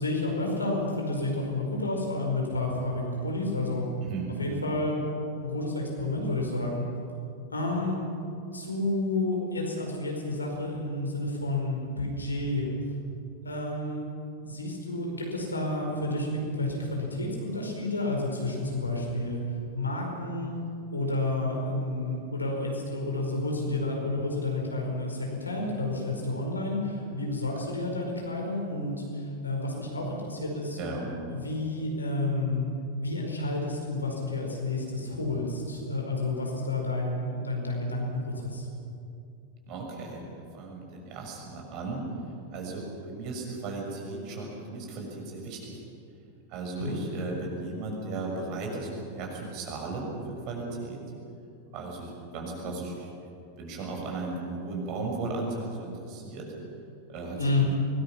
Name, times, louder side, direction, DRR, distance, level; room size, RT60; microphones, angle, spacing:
voice 1, 0.0-3.8 4.4-5.0 5.4-6.8 7.5-8.0 8.5-12.7 13.4-14.1 14.4-19.4 19.7-20.5 20.9-30.8 31.3-32.7 33.0-38.7 46.8-47.0 57.4-57.7, left 2 dB, 80° left, 0 dB, 5.1 m, -30 dB
voice 2, 4.0-4.4 30.7-31.1 39.7-42.0 42.5-45.8 46.5-51.0 51.7-53.1 53.6-56.5 57.1-57.7, right 3 dB, 40° right, 0 dB, 6.2 m, -36 dB
24.5 x 20.0 x 6.0 m, 2.6 s
figure-of-eight pair, 90°, 0 cm